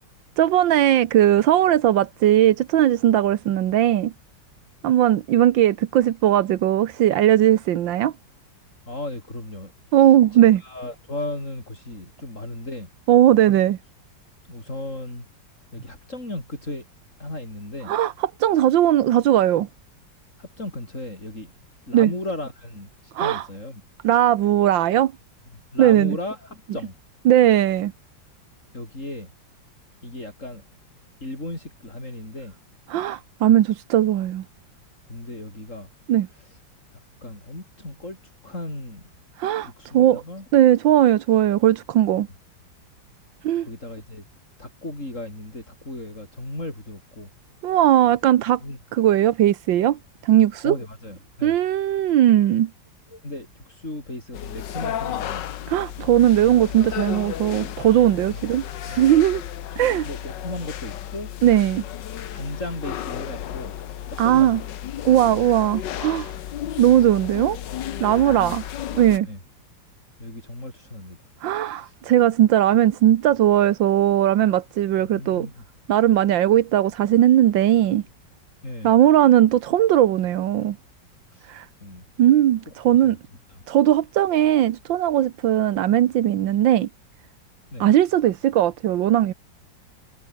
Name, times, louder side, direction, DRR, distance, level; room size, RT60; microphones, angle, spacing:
voice 1, 0.4-4.1 4.8-8.1 9.9-10.6 13.1-13.8 17.9-18.1 18.4-19.7 21.9-22.1 23.1-23.4 24.0-25.1 25.8-26.2 27.3-27.9 32.9-34.4 36.1-36.3 39.4-40.2 40.5-42.3 43.4-43.7 47.6-48.6 48.9-50.7 51.4-52.7 55.7-59.4 59.8-60.1 61.4-61.8 64.2-64.6 65.0-66.3 66.8-67.6 68.0-68.6 68.9-69.3 71.4-75.5 75.9-78.0 78.8-80.8 81.5-81.7 82.2-83.2 83.7-86.9 87.8-89.3, right 12 dB, 85° right, 1.7 m, -18 dB
voice 2, 8.9-12.9 14.4-15.3 15.7-16.9 17.2-17.9 20.4-21.5 21.9-23.8 25.5-27.0 28.7-29.3 30.0-30.6 31.2-32.6 35.1-35.9 36.3-36.6 37.2-39.1 39.6-40.5 43.6-44.2 44.6-47.3 48.6-48.8 50.6-51.6 53.1-55.5 58.3-58.4 58.8-59.0 60.0-61.3 62.1-63.7 64.1-64.6 65.0-65.5 68.2-68.6 69.2-69.4 70.2-71.3 71.6-71.9 74.9-75.6 78.6-78.9 81.3-81.5 81.8-82.0 82.7-82.8 83.0-83.2 83.5-83.8 87.7-87.9, left 2 dB, 40° left, 8.0 m, -36 dB
sound 1, 54.3-69.2, left 11 dB, 70° left, 1.6 m, -33 dB
omnidirectional pair, 2.0 m